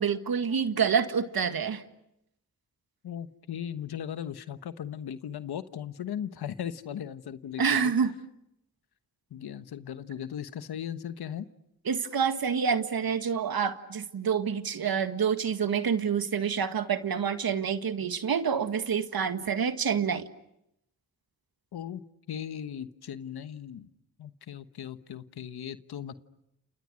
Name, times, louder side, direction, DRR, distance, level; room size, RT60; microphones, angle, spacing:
voice 1, 0.0-1.8 7.6-8.1 11.9-20.3, right 6 dB, 70° right, 9 dB, 1.9 m, -27 dB
voice 2, 3.0-7.9 9.3-11.5 21.7-22.0 22.3-23.9 24.2-26.2, left 9 dB, 85° left, 11 dB, 1.2 m, -37 dB
29.5 x 28.5 x 6.4 m, 0.82 s
cardioid pair, 45°, 37 cm